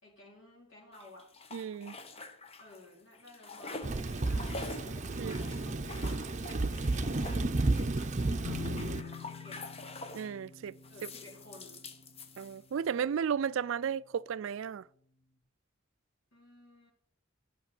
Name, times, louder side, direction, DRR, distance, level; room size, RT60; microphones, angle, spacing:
voice 1, 0.0-1.3 2.6-4.7 5.1-6.6 8.3-9.6 10.9-11.8 16.3-16.9, left 1 dB, 70° left, 4.1 m, -55 dB
sound 1, 0.9-2.9 3.1-10.4 10.8-12.9, left 3 dB, 30° left, 0.8 m, -47 dB
voice 2, 1.5-2.0 5.2-5.3 10.1-10.7 11.0-11.1 12.4-14.9, right 7 dB, 75° right, 0.4 m, -34 dB
Thunder / Rain, 3.8-9.0, right 2 dB, 40° right, 0.7 m, -32 dB
sound 2, 8.4-14.0, left 6 dB, 90° left, 2.3 m, -47 dB
11.0 x 5.9 x 7.1 m
head